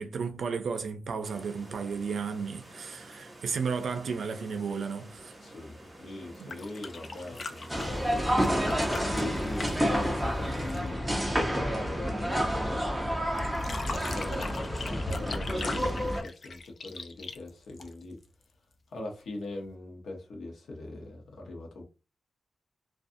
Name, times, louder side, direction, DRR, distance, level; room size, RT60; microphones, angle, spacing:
voice 1, 0.0-5.4 6.4-6.6, right 5 dB, 70° right, 0.4 m, -33 dB
sound 1, 1.2-10.8, right 1 dB, 25° right, 0.9 m, -50 dB
voice 2, 5.4-8.5 9.4-11.0 11.3-13.2 13.9-18.2 18.9-21.8, left 2 dB, 85° left, 0.7 m, -41 dB
sound 2, 6.3-11.0 13.4-18.3 19.7-19.8, left 3 dB, 50° left, 0.3 m, -40 dB
sound 3, 7.7-16.2, equal, 5° right, 0.6 m, -29 dB
2.4 x 2.3 x 2.6 m
wide cardioid pair, 150°, 0 cm